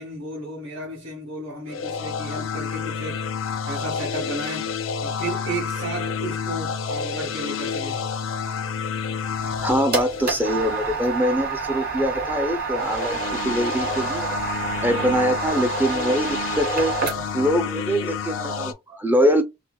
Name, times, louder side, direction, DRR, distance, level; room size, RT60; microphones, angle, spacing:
voice 1, 0.0-3.2 3.7-4.7 5.0-8.0, right 2 dB, 80° right, 1.5 m, -33 dB
sound 1, 1.7-11.2 12.7-18.7, left 6 dB, 85° left, 0.4 m, -29 dB
sound 2, 9.4-17.5, right 5 dB, 50° right, 1.7 m, -29 dB
voice 2, 9.6-14.4 14.8-16.9 17.3-19.4, equal, 10° right, 0.4 m, -23 dB
4.3 x 2.1 x 2.2 m
head